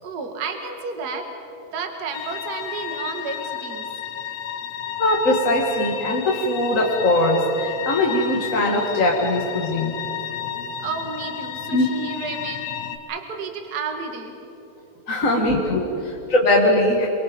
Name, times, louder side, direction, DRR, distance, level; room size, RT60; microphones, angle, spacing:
voice 1, 0.0-1.2 1.7-3.9 10.8-12.7 13.1-14.4 15.3-15.6 16.0-16.2, right 4 dB, 35° right, 4 dB, 2.0 m, -31 dB
sound 1, 2.1-13.0, left 9 dB, 90° left, 2.8 m, -32 dB
voice 2, 5.0-9.9 11.7-11.8 15.1-17.1, left 1 dB, 35° left, -1 dB, 1.5 m, -20 dB
28.0 x 24.5 x 5.3 m, 3.0 s
omnidirectional pair, 4.1 m